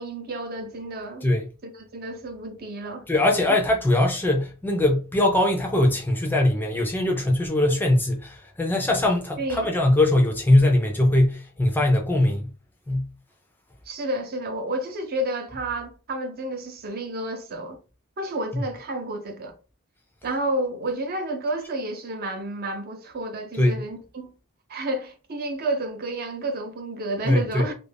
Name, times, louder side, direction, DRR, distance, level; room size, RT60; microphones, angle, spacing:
voice 1, 0.0-1.3 1.6-3.1 9.4-9.7 13.9-17.8 18.2-19.5 20.2-24.3 24.7-27.7, right 1 dB, 45° right, 0.6 m, -30 dB
voice 2, 3.1-12.5 12.9-13.1 23.6-23.7 27.3-27.7, left 1 dB, 10° left, 0.4 m, -21 dB
2.4 x 2.1 x 3.3 m
head